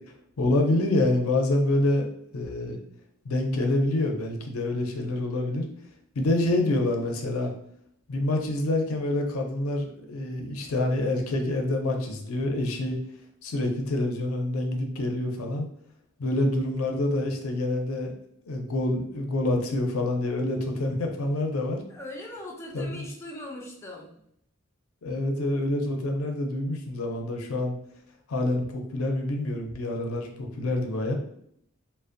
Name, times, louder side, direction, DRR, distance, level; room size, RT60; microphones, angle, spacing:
voice 1, 0.4-2.1 2.3-2.8 3.2-5.7 6.2-7.5 8.1-13.0 13.4-15.7 16.2-18.1 18.5-21.8 22.7-23.1 25.0-27.7 28.3-31.1, left 1 dB, 85° left, 2 dB, 0.5 m, -27 dB
voice 2, 21.9-24.2, left 1 dB, 10° left, -2 dB, 0.3 m, -40 dB
2.5 x 2.0 x 2.5 m, 0.71 s
head